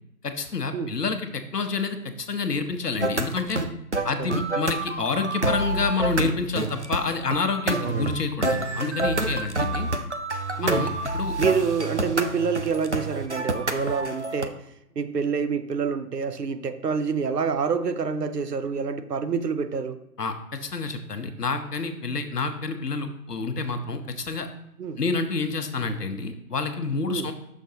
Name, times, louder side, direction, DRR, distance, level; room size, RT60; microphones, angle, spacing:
voice 1, 0.2-3.6 4.0-9.9 10.6-11.4 20.2-24.5 25.0-27.3, left 4 dB, 80° left, 1.1 m, -28 dB
sound 1, 3.0-14.5, right 2 dB, 50° right, 0.4 m, -28 dB
voice 2, 4.0-4.4 7.8-8.2 10.6-10.9 11.4-14.6 15.0-20.0 24.8-25.0 27.1-27.3, right 5 dB, 85° right, 0.8 m, -27 dB
9.1 x 6.3 x 2.8 m
figure-of-eight pair, 180°, 47 cm